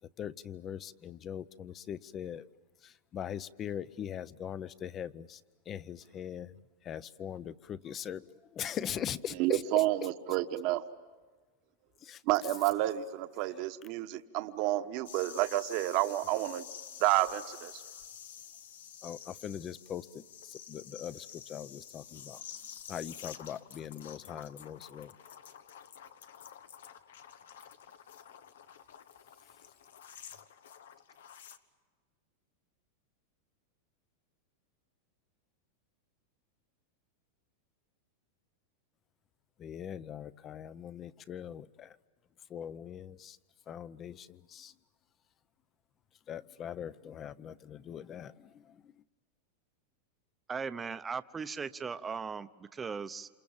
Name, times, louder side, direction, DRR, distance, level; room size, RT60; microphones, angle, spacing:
voice 1, 0.2-2.4 2.8-5.4 5.7-6.5 6.8-8.3 8.5-9.6 12.0-12.2 19.0-22.4 22.9-25.1 39.6-41.9 42.5-43.4 43.7-44.7 46.3-48.6, left 9 dB, 25° left, 17 dB, 0.8 m, -41 dB
voice 2, 9.3-10.8 12.2-16.7 17.0-17.8, right 15 dB, 45° right, 9 dB, 1.2 m, -30 dB
sound 1, 15.0-31.6, left 8 dB, 90° left, 1.4 m, -50 dB
voice 3, 50.5-53.3, right 5 dB, 15° right, 12 dB, 0.9 m, -38 dB
28.0 x 28.0 x 7.3 m, 1.4 s
supercardioid pair, 145°, 0 cm